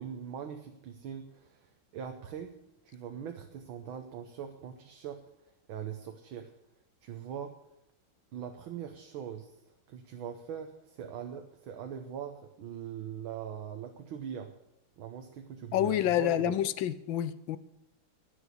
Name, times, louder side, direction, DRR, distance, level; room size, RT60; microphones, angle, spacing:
voice 1, 0.0-2.5 2.9-5.2 5.7-6.5 7.0-7.5 8.3-9.5 9.9-14.5 15.0-16.5, right 8 dB, 75° right, 5 dB, 1.7 m, -41 dB
voice 2, 15.7-17.6, left 11 dB, 75° left, 15 dB, 1.3 m, -28 dB
11.5 x 9.7 x 8.1 m, 0.86 s
omnidirectional pair, 2.3 m